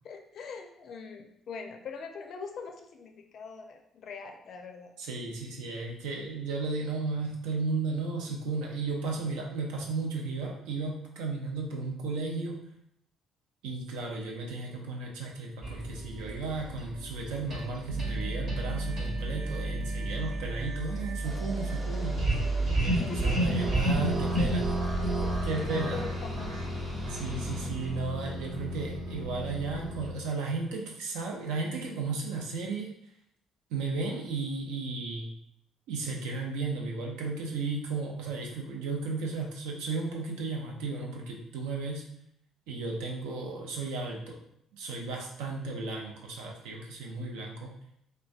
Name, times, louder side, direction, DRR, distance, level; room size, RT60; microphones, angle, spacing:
voice 1, 0.0-4.9 22.9-23.5 25.1-25.3 25.9-26.1 26.4-26.6, left 5 dB, 60° left, 4 dB, 0.4 m, -42 dB
voice 2, 5.0-12.6 13.6-24.7 25.4-26.0 27.1-32.9 33.7-35.3 35.9-42.0 42.7-44.4 44.7-47.7, right 3 dB, 75° right, 0 dB, 0.5 m, -34 dB
sound 1, 15.6-30.1, right 1 dB, 60° right, 1.1 m, -31 dB
sound 2, 21.2-27.7, right 1 dB, 20° right, 0.8 m, -44 dB
3.2 x 2.2 x 2.3 m, 0.74 s
hypercardioid pair, 50°, 0 cm